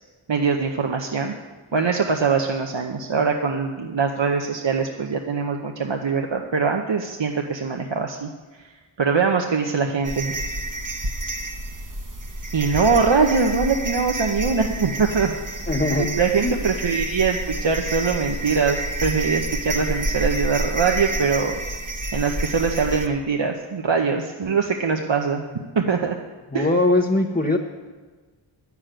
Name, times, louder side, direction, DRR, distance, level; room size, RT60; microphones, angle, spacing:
voice 1, 0.3-1.3 1.7-8.3 9.0-10.3 12.5-15.3 16.0-21.6 22.1-25.4 25.7-26.2 26.5-26.7, right 5 dB, 60° right, 3 dB, 0.9 m, -22 dB
sound 1, 10.0-23.1, right 1 dB, 40° right, 1.1 m, -29 dB
voice 2, 15.7-16.1 16.4-16.6 26.5-27.6, left 2 dB, 20° left, 1 dB, 0.9 m, -20 dB
11.0 x 7.1 x 8.9 m, 1.3 s
wide cardioid pair, 55°, 50 cm